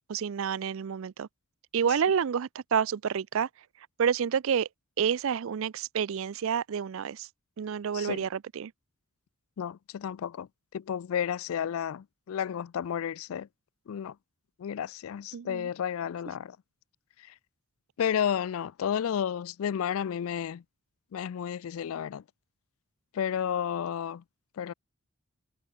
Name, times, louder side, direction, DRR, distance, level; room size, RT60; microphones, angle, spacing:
voice 1, 0.1-1.3 1.7-3.5 3.8-4.7 5.0-7.3 7.6-8.7 15.3-15.7, right 7 dB, 65° right, 0.4 m, -29 dB
voice 2, 7.9-8.3 9.6-10.5 10.7-13.5 13.9-14.1 14.6-16.6 18.0-20.6 21.1-22.2 23.1-24.2 24.6-24.7, left 8 dB, 70° left, 0.3 m, -32 dB
head